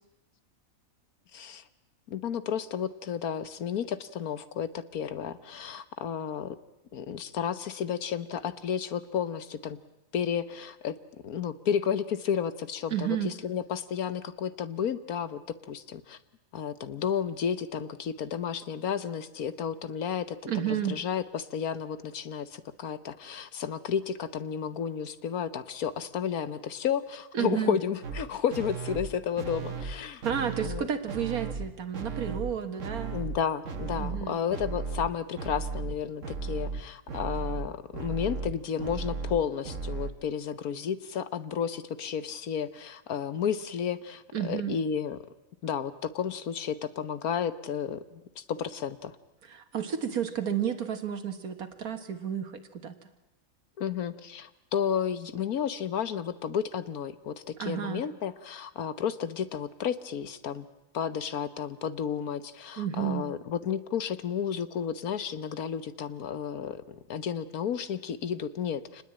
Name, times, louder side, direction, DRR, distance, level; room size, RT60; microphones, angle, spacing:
voice 1, 1.3-1.6 2.1-6.6 6.9-9.8 10.1-11.0 11.2-16.2 16.5-30.9 33.1-45.2 45.6-49.1 53.8-60.7 60.9-69.0, left 8 dB, 90° left, 13 dB, 1.6 m, -32 dB
voice 2, 12.9-13.3 20.5-21.0 27.3-27.8 30.2-33.1 34.0-34.4 44.3-44.8 49.4-52.5 52.8-52.9 57.6-58.0 62.8-63.3, right 9 dB, 90° right, 7 dB, 2.0 m, -31 dB
sound 1, 28.0-28.2 28.5-29.1 29.4-30.0 30.2-30.8 31.1-31.7 31.9-32.5 32.8-33.4 33.6-34.2 34.5-35.1 35.4-36.0 36.2-40.1, right 4 dB, 60° right, 1.7 m, -35 dB
27.0 x 20.0 x 8.8 m, 0.95 s
omnidirectional pair, 1.5 m